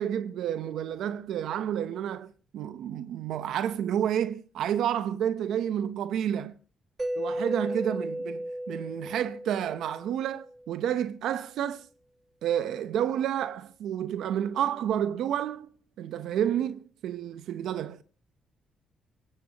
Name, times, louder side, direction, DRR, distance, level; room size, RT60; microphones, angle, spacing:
voice 1, 0.0-6.5 7.2-11.9 12.4-15.7 16.0-18.0, right 10 dB, 80° right, 0.8 m, -30 dB
Mallet percussion, 7.0-10.8, right 1 dB, 20° right, 2.2 m, -35 dB
26.0 x 16.5 x 3.0 m
cardioid pair, 90°, 0 cm